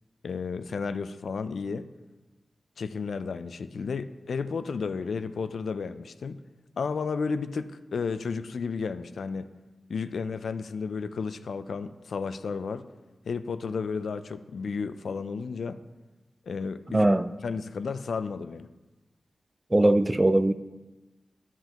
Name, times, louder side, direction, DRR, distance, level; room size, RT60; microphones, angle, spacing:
voice 1, 0.2-1.9 2.8-6.4 6.8-9.5 9.9-12.9 13.2-15.8 16.5-17.1 17.4-18.7, left 5 dB, 85° left, 0.4 m, -32 dB
voice 2, 16.9-17.3 19.7-20.5, right 1 dB, 20° right, 0.4 m, -20 dB
12.5 x 5.7 x 2.9 m
wide cardioid pair, 75°, 0 cm